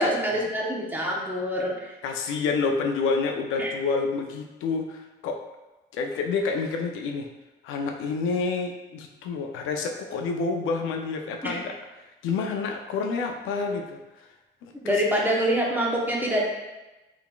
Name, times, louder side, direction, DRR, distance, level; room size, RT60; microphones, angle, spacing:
voice 1, 0.0-1.9 3.6-3.7 11.4-11.6 14.8-16.4, equal, 10° right, -3 dB, 0.8 m, -25 dB
voice 2, 2.0-5.4 5.9-7.3 7.6-11.7 12.2-14.3 14.6-14.9, left 4 dB, 90° left, 3 dB, 0.5 m, -28 dB
3.7 x 3.5 x 2.2 m, 1.1 s
cardioid pair, 90°, 20 cm